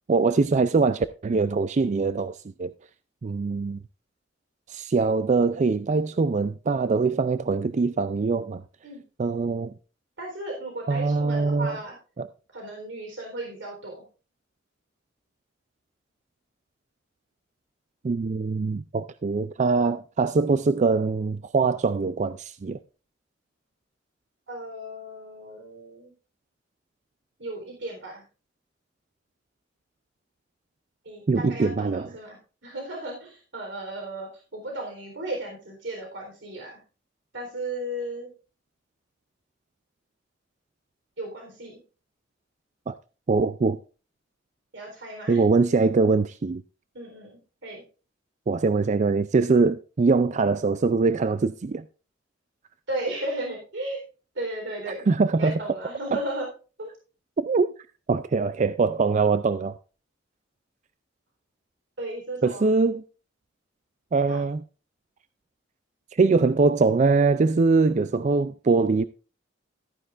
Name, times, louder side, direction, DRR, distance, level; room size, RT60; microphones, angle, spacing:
voice 1, 0.1-2.7 3.2-3.8 4.7-8.6 9.2-9.7 10.9-11.8 12.2-12.3 18.0-22.8 31.3-32.1 42.9-43.0 43.3-43.8 45.3-46.6 48.5-51.8 55.1-55.6 56.1-56.2 57.4-57.7 58.1-59.7 62.4-63.0 64.1-64.6 66.2-69.1, right 4 dB, 40° right, 0.4 m, -23 dB
voice 2, 10.2-12.0 12.5-14.0 24.5-26.1 27.4-28.2 31.0-36.8 37.3-38.3 41.2-41.8 44.7-45.5 46.9-47.8 52.9-54.0 54.3-55.1 55.3-56.5 56.8-56.9 62.0-62.6 64.3-64.4, right 1 dB, 70° right, 3.9 m, -35 dB
13.5 x 9.8 x 2.5 m
head